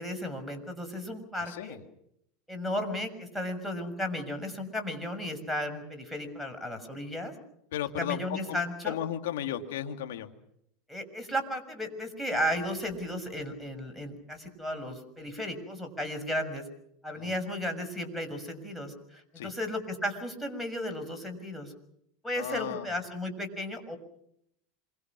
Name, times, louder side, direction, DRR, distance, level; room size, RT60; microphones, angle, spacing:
voice 1, 0.0-1.8 2.5-7.3 8.0-9.0 10.9-16.6 17.0-21.7 22.2-24.0, left 1 dB, 5° left, 4 dB, 6.4 m, -34 dB
voice 2, 1.4-1.8 7.7-10.3 17.2-17.3 19.4-19.5 22.4-22.9, left 10 dB, 80° left, 6 dB, 2.4 m, -35 dB
27.5 x 24.5 x 6.2 m, 0.75 s
supercardioid pair, 115°, 0 cm